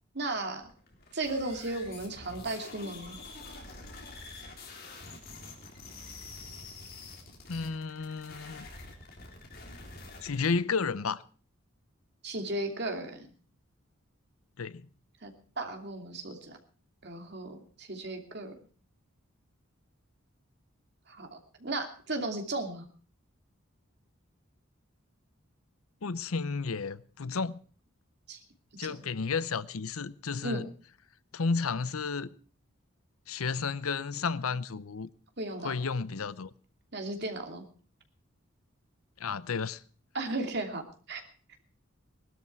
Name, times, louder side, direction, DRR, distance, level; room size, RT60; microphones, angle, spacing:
voice 1, 0.1-0.6 1.1-3.2 12.2-13.3 15.2-15.3 15.6-16.6 17.0-18.5 21.1-22.9 28.3-28.4 28.8-29.0 30.4-30.7 35.4-35.7 36.9-37.6 40.1-41.2, right 2 dB, 50° right, 2.8 m, -35 dB
sound 1, 0.6-10.5, left 3 dB, 45° left, 3.7 m, -47 dB
voice 2, 7.5-8.7 10.2-11.2 14.6-14.8 26.0-27.6 28.8-30.6 31.3-32.3 33.3-35.1 35.6-36.5 39.2-39.8, left 5 dB, 90° left, 0.7 m, -32 dB
19.0 x 12.5 x 4.7 m
head